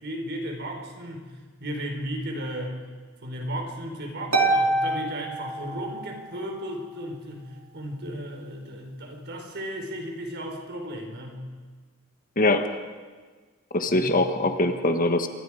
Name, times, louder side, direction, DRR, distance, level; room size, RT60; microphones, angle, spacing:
voice 1, 0.0-1.3 1.6-2.8 3.2-11.4 13.9-14.6, equal, 50° right, 3 dB, 4.5 m, -35 dB
Harp, 4.3-6.2, right 2 dB, 75° right, 3.2 m, -25 dB
voice 2, 12.4-12.7 13.7-15.3, left 2 dB, 40° left, 6 dB, 1.5 m, -22 dB
29.0 x 25.5 x 5.0 m, 1.5 s
head